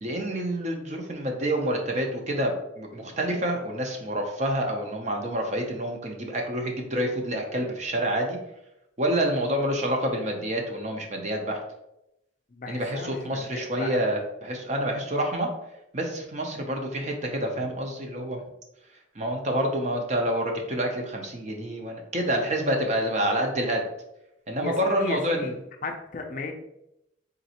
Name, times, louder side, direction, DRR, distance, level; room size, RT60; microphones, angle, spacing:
voice 1, 0.0-8.4 9.0-11.6 12.7-15.5 15.9-18.4 19.1-23.9 24.5-25.5, right 1 dB, 35° right, 2 dB, 0.6 m, -28 dB
voice 2, 12.5-14.1 24.6-25.5 25.8-26.5, left 3 dB, 45° left, 4 dB, 0.4 m, -35 dB
3.9 x 3.1 x 2.8 m, 0.85 s
head